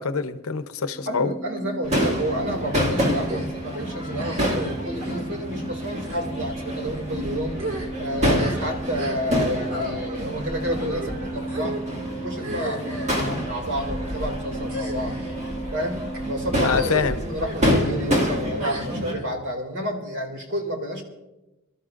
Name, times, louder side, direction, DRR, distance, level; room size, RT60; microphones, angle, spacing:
voice 1, 0.0-1.3 13.1-13.4 16.6-17.2, left 5 dB, 80° left, 10 dB, 0.7 m, -25 dB
sound 1, 0.9-16.7, right 2 dB, 10° right, 2.2 m, -36 dB
voice 2, 1.1-7.6 8.0-11.8 12.2-15.2 15.7-21.0, equal, 55° right, 2 dB, 2.4 m, -30 dB
Crowd / Fireworks, 1.8-19.1, equal, 30° right, 2.0 m, -28 dB
sound 2, 3.2-3.5 4.1-4.7 5.0-5.3 6.0-6.2 6.9-7.1 7.5-9.4 9.7-9.9 10.7-11.1 11.5-11.8 12.4-13.2 13.9-14.1 14.6-15.3 15.9-16.2 16.6-17.0 17.4-17.6 18.6-19.3, equal, 75° right, 2.0 m, -34 dB
27.0 x 12.5 x 2.5 m, 0.99 s
head